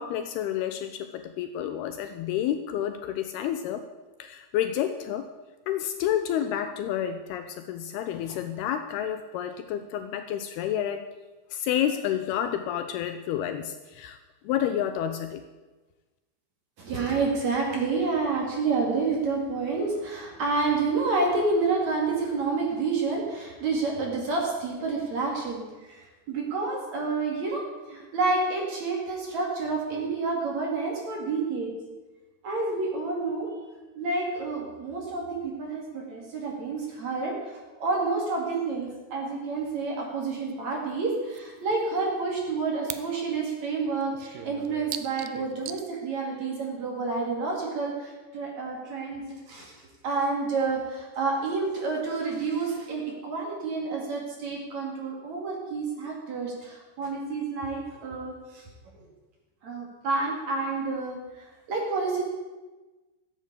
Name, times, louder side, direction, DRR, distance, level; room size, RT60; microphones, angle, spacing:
voice 1, 0.0-3.9 4.2-5.3 5.7-11.1 11.5-14.2 14.4-15.4, left 10 dB, 80° left, 8 dB, 2.4 m, -30 dB
voice 2, 16.8-27.6 27.9-31.7 32.4-33.5 34.0-49.7 50.0-58.7 58.9-59.0 59.6-62.2, right 3 dB, 45° right, -1 dB, 3.1 m, -29 dB
sound 1, 40.5-40.6 40.9-41.0 41.3-41.4 41.7-43.1 43.3-43.4 43.9-45.8, right 12 dB, 90° right, 2.0 m, -39 dB
15.0 x 8.2 x 8.3 m, 1.2 s
omnidirectional pair, 5.0 m